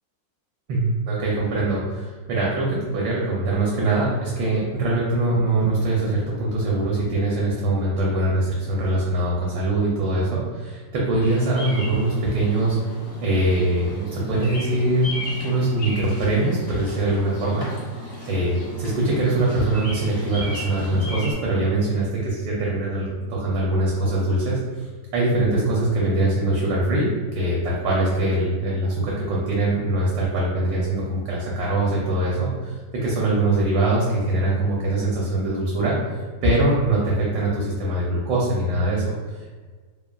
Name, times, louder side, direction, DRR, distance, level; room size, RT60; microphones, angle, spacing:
voice 1, 0.7-12.8 13.2-15.1 15.4-24.9 25.1-39.5, right 2 dB, 80° right, -4 dB, 1.3 m, -23 dB
Bird vocalization bird call bird song, 11.2-21.3, left 1 dB, 45° left, 0.4 m, -36 dB
3.0 x 2.3 x 2.2 m, 1.4 s
omnidirectional pair, 2.0 m